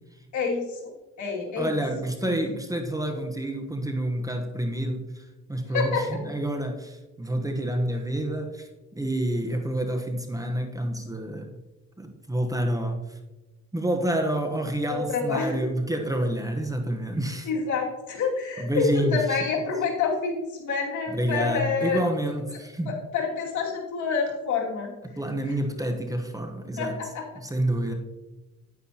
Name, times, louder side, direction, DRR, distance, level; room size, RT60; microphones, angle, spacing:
voice 1, 0.3-0.9 1.2-1.7 2.2-2.3 5.7-6.2 14.9-15.6 17.4-22.0 22.9-24.9 26.8-27.2, left 5 dB, 70° left, -2 dB, 2.6 m, -27 dB
voice 2, 1.5-11.5 12.0-13.2 13.7-17.5 18.6-19.4 21.1-23.0 25.0-27.0 27.3-27.9, right 1 dB, 10° right, 4 dB, 1.1 m, -28 dB
9.5 x 9.5 x 2.9 m, 1.1 s
cardioid pair, 90°, 30 cm